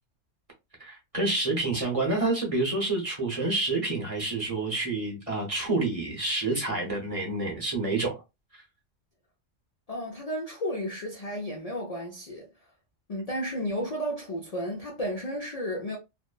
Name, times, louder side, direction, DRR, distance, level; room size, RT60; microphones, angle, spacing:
voice 1, 0.8-8.2 8.5-8.6, right 2 dB, 30° right, 0.7 m, -28 dB
voice 2, 9.9-12.5 13.1-16.0, equal, 55° left, 0.4 m, -33 dB
2.9 x 2.1 x 2.2 m
omnidirectional pair, 1.4 m